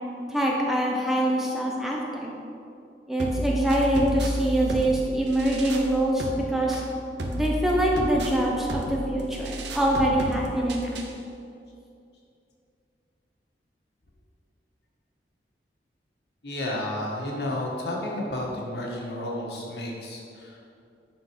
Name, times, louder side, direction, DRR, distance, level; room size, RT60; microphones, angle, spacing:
voice 1, 0.3-2.3 3.1-6.8 7.3-11.1, right 1 dB, ahead, -3 dB, 0.9 m, -24 dB
sound 1, 3.2-11.2, right 1 dB, 80° right, 0.8 m, -32 dB
voice 2, 16.4-20.7, left 1 dB, 65° left, -3 dB, 1.6 m, -32 dB
10.5 x 4.4 x 4.8 m, 2.5 s
head